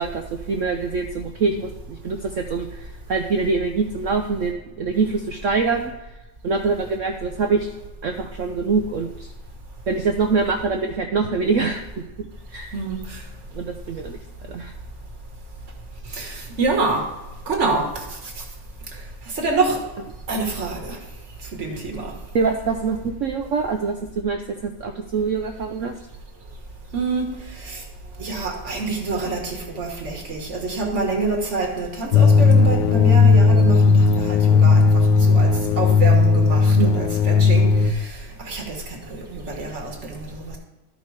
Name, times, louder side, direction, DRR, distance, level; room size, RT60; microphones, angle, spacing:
voice 1, 0.0-6.1 6.4-7.7 8.0-9.3 9.9-12.7 13.5-14.2 14.5-14.7 22.3-25.9 36.8-37.1, right 4 dB, 75° right, 5 dB, 0.7 m, -24 dB
voice 2, 12.7-13.2 16.1-17.0 17.5-18.3 19.3-19.8 20.3-21.0 21.5-22.1 26.9-27.8 28.2-35.5 35.8-40.6, right 3 dB, 40° right, 1 dB, 1.7 m, -27 dB
sound 1, 32.1-37.9, left 4 dB, 75° left, 1.4 m, -15 dB
12.5 x 5.3 x 4.8 m, 1.1 s
omnidirectional pair, 2.0 m